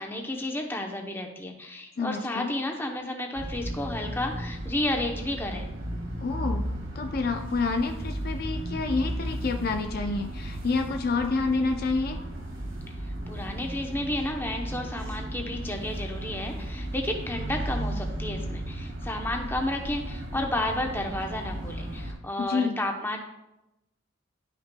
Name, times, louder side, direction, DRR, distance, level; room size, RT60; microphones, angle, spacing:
voice 1, 0.0-5.7 13.3-23.2, left 1 dB, 10° left, 3 dB, 0.7 m, -32 dB
voice 2, 2.0-2.5 6.2-6.7 6.9-12.2 22.4-22.8, left 4 dB, 45° left, 5 dB, 0.4 m, -28 dB
sound 1, 3.4-22.1, right 1 dB, 60° right, 1.7 m, -35 dB
11.5 x 5.8 x 2.2 m, 0.93 s
head